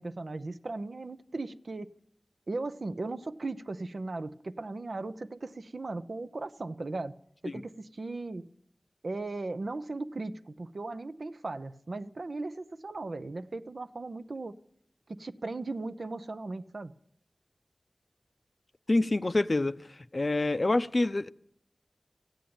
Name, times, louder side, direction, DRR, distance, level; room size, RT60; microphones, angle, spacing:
voice 1, 0.0-1.9 2.5-7.1 7.4-8.5 9.0-14.6 15.1-16.9, right 2 dB, 70° right, 0.6 m, -37 dB
voice 2, 18.9-19.7 20.1-21.3, left 2 dB, 45° left, 0.5 m, -26 dB
14.5 x 9.1 x 8.7 m
wide cardioid pair, 55°, 0 cm